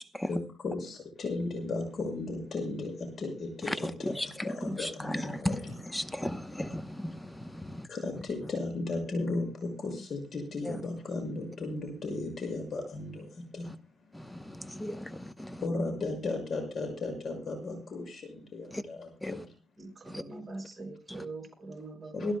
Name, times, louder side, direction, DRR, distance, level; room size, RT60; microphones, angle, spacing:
voice 1, 0.3-5.8 7.9-13.7 15.6-19.5 22.1-22.3, left 2 dB, 50° left, 6.5 m, -35 dB
voice 2, 4.7-5.6 5.9-7.9 10.7-10.8 14.1-15.6 18.7-18.8 19.2-19.3 20.1-20.2 21.1-21.2, left 1 dB, 10° left, 0.9 m, -36 dB
voice 3, 19.8-22.3, right 3 dB, 25° right, 5.7 m, -43 dB
27.5 x 12.5 x 2.3 m
cardioid pair, 90°, 0 cm